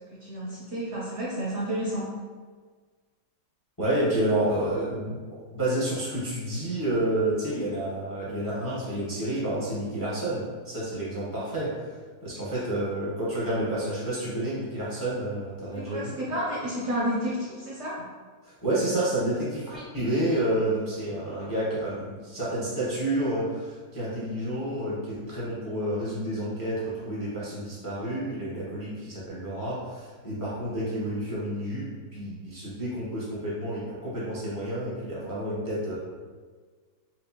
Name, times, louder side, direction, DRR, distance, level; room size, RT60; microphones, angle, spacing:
voice 1, 0.2-2.1 15.8-17.9 19.7-19.8, equal, 55° right, -6 dB, 0.9 m, -31 dB
voice 2, 3.8-5.2 5.5-11.9 12.2-16.2 18.4-31.9 32.1-36.0, right 1 dB, 15° left, -8 dB, 0.8 m, -29 dB
4.3 x 3.2 x 2.8 m, 1.5 s
omnidirectional pair, 1.8 m